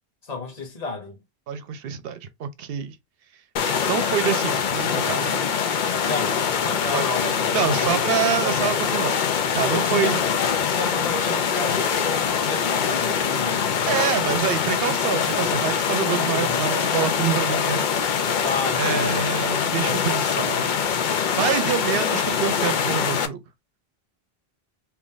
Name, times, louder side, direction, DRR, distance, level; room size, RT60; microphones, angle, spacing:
voice 1, 0.2-1.2 6.0-8.4 9.7-10.4 10.7-13.9 16.0-16.7 18.4-19.2, left 4 dB, 40° left, 1.1 m, -32 dB
voice 2, 1.5-3.0 3.6-5.5 6.9-7.0 7.5-10.2 13.9-17.9 18.8-20.7 21.4-23.4, right 8 dB, 70° right, 0.8 m, -26 dB
sound 1, 3.6-23.3, left 7 dB, 60° left, 0.6 m, -23 dB
2.8 x 2.5 x 3.7 m
omnidirectional pair, 1.0 m